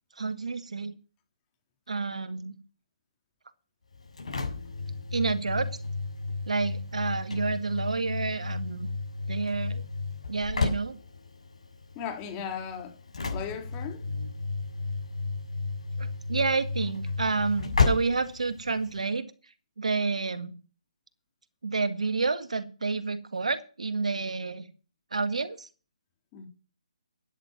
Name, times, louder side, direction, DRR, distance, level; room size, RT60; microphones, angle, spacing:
voice 1, 0.2-0.9 1.9-2.5 5.1-5.8 6.5-8.9 9.3-9.8 10.3-11.0 14.1-14.3 16.0-19.2 19.8-20.5 21.6-24.7 25.1-25.7, right 4 dB, 70° right, 1.8 m, -29 dB
Engine / Slam, 3.9-19.1, left 4 dB, 65° left, 7.1 m, -33 dB
voice 2, 11.9-13.0 13.3-14.1 26.3-26.5, left 7 dB, 20° left, 3.3 m, -37 dB
13.0 x 9.4 x 6.0 m
figure-of-eight pair, 145°, 4 cm